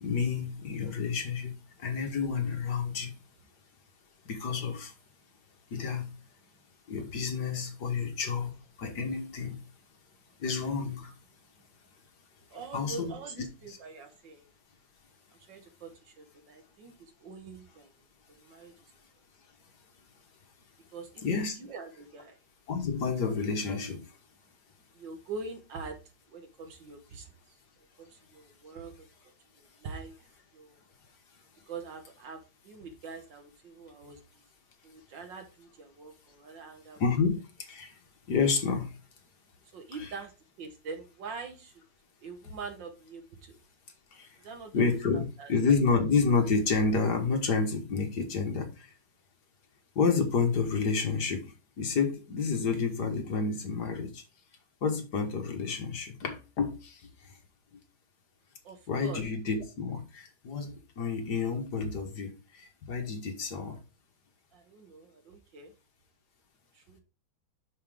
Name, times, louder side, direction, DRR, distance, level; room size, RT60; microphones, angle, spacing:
voice 1, 0.0-1.5 1.8-3.1 4.3-4.9 5.7-6.1 6.9-8.5 8.8-9.6 10.4-11.1 12.7-13.1 13.7-13.8 21.2-21.6 22.7-24.0 37.0-37.4 37.7-37.9 38.3-38.9 40.0-40.1 44.7-48.7 49.9-51.4 51.8-54.2 54.8-56.9 58.9-62.3 62.9-63.8, left 5 dB, 55° left, 1.8 m, -29 dB
voice 2, 12.5-14.5 15.4-18.9 20.9-22.4 24.9-26.0 26.3-27.6 28.0-29.1 29.6-30.2 30.5-30.8 31.7-34.4 34.8-37.0 39.7-40.3 40.6-41.7 42.2-43.6 44.4-44.9 45.1-45.5 58.6-59.2 64.5-65.7 66.7-67.0, right 4 dB, 65° right, 2.0 m, -44 dB
6.2 x 5.6 x 4.9 m
omnidirectional pair, 2.2 m